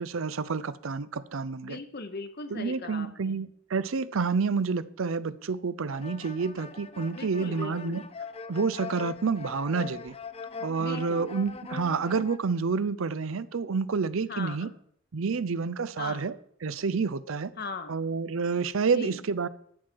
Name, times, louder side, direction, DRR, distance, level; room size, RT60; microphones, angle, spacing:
voice 1, 0.0-1.8 2.5-8.0 8.5-10.2 10.6-14.7 15.1-16.3 16.6-17.5 17.9-19.5, right 5 dB, 80° right, 0.6 m, -29 dB
voice 2, 1.6-3.4 7.1-8.0 10.8-11.3 14.3-14.7 16.0-16.2 17.6-18.0 18.9-19.2, left 3 dB, 50° left, 1.1 m, -39 dB
sound 1, 5.9-12.4, left 5 dB, 30° left, 0.6 m, -41 dB
13.0 x 7.8 x 4.6 m
head